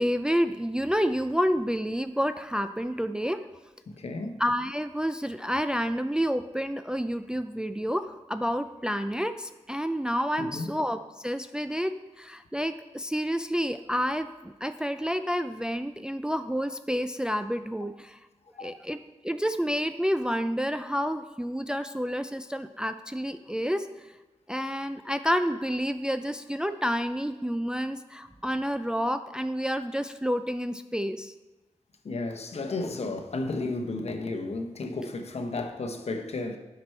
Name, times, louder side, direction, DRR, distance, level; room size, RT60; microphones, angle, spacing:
voice 1, 0.0-3.5 4.4-18.2 18.6-24.1 24.5-31.3, equal, 5° right, 0.3 m, -29 dB
voice 2, 3.9-4.4 10.4-10.7 18.6-18.7 32.0-36.6, left 2 dB, 60° left, 0.9 m, -33 dB
9.5 x 5.9 x 4.4 m
wide cardioid pair, 105°, 12 cm